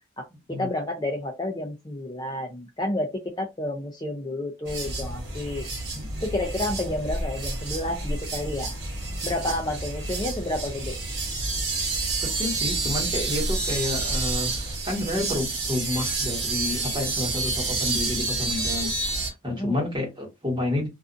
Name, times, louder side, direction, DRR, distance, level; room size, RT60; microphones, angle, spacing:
voice 1, 0.2-5.7 6.2-8.8 9.2-11.0 19.5-19.8, left 1 dB, 20° left, 0.4 m, -30 dB
sound 1, 4.7-19.3, right 3 dB, 55° right, 1.0 m, -29 dB
voice 2, 5.9-6.2 12.2-20.9, left 2 dB, 20° right, 1.2 m, -30 dB
2.4 x 2.4 x 2.5 m
head